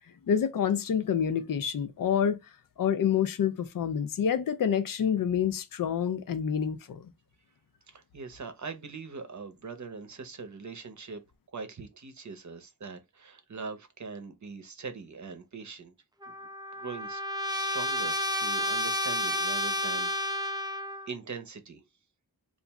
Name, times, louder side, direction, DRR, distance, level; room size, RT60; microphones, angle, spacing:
voice 1, 0.3-2.4 2.8-7.1, left 8 dB, 65° left, 0.5 m, -27 dB
voice 2, 7.9-11.2 11.5-15.9 16.3-16.4 16.8-17.2 17.5-20.8 21.1-21.8, right 4 dB, 55° right, 0.7 m, -42 dB
Trumpet, 16.2-21.1, left 1 dB, 10° right, 0.4 m, -31 dB
2.9 x 2.5 x 3.4 m
wide cardioid pair, 80°, 36 cm